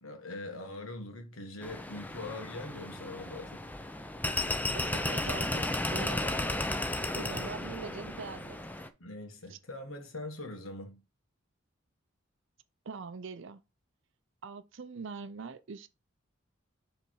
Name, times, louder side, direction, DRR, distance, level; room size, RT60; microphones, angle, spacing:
voice 1, 0.0-3.6 9.0-11.0, left 2 dB, 85° left, 1.5 m, -42 dB
sound 1, 1.6-8.9, left 1 dB, 10° left, 0.5 m, -34 dB
voice 2, 4.7-6.4 7.1-8.6 9.5-9.6 12.9-13.6 14.4-15.9, right 5 dB, 65° right, 0.5 m, -42 dB
6.9 x 3.4 x 4.6 m
head